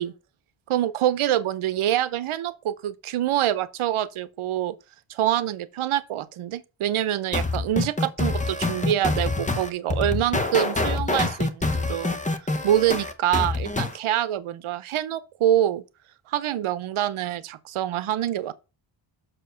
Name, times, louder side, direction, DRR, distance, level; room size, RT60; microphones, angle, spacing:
voice 1, 0.7-4.7 5.1-12.2 12.6-15.8 16.3-18.5, right 12 dB, 85° right, 0.8 m, -25 dB
sound 1, 7.3-14.0, left 2 dB, 15° left, 0.8 m, -26 dB
6.5 x 4.5 x 6.2 m
wide cardioid pair, 140°, 48 cm